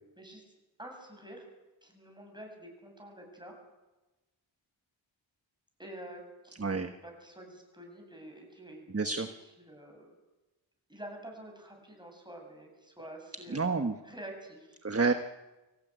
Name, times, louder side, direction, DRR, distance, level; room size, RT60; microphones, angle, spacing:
voice 1, 0.8-1.5 1.8-3.5 5.8-8.9 9.6-10.1 10.9-13.8 14.0-14.8, right 1 dB, 10° right, 2 dB, 7.9 m, -48 dB
voice 2, 6.6-6.9 8.9-9.3 13.5-13.9 14.8-15.1, right 4 dB, 30° right, 7 dB, 1.3 m, -28 dB
25.0 x 16.5 x 9.4 m, 1.1 s
wide cardioid pair, 80°, 47 cm